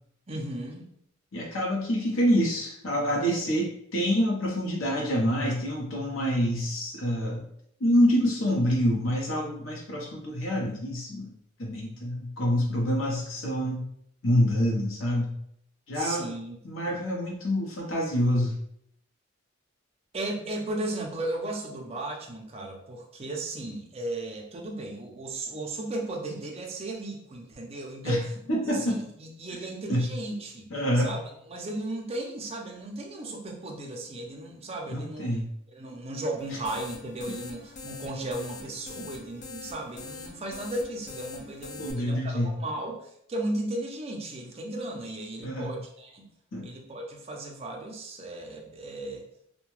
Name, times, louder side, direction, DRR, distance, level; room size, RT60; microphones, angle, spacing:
voice 1, 0.3-0.9 15.9-16.6 16.9-17.0 20.1-28.4 28.6-30.7 30.9-35.3 35.7-46.3 46.6-49.3, right 1 dB, 30° right, 0 dB, 0.5 m, -35 dB
voice 2, 1.3-7.4 7.8-11.3 11.6-13.8 14.2-15.3 15.9-16.3 16.6-18.5 28.0-28.2 28.5-28.9 29.9-30.0 30.7-31.1 34.9-35.5 41.8-42.5 45.4-45.7 46.5-46.7, equal, 65° left, -1 dB, 0.7 m, -26 dB
sound 1, 36.4-41.9, left 3 dB, 35° left, 0.3 m, -43 dB
2.7 x 2.2 x 3.0 m, 0.70 s
head